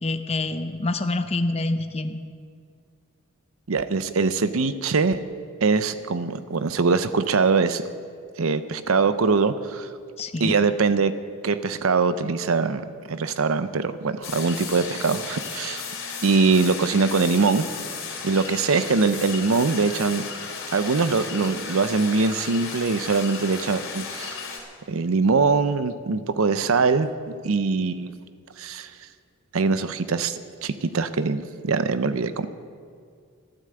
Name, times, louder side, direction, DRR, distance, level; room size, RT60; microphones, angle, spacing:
voice 1, 0.0-2.2 10.2-10.5, left 2 dB, 30° left, 9 dB, 0.6 m, -26 dB
voice 2, 3.7-5.2 5.6-7.8 8.4-9.9 10.4-11.1 11.4-15.8 16.2-17.6 18.2-20.2 20.7-24.4 24.9-27.1 27.4-28.1 28.6-28.9 29.5-32.5, right 4 dB, 75° right, 12 dB, 0.6 m, -22 dB
sound 1, 14.2-24.6, left 5 dB, 65° left, 3.4 m, -34 dB
13.0 x 11.0 x 7.8 m, 2.1 s
head